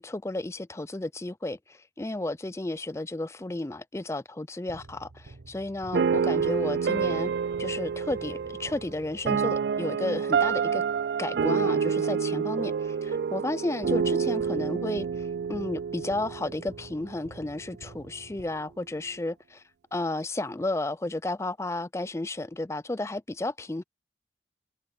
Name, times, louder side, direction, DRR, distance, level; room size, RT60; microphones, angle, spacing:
voice 1, 0.0-7.3 7.6-10.8 11.2-19.6 19.9-23.8, left 2 dB, 15° left, 0.4 m, -33 dB
sound 1, 4.7-9.8 13.8-19.0, right 2 dB, 90° right, 1.1 m, -50 dB
sound 2, 5.9-17.0, right 6 dB, 65° right, 0.3 m, -28 dB
head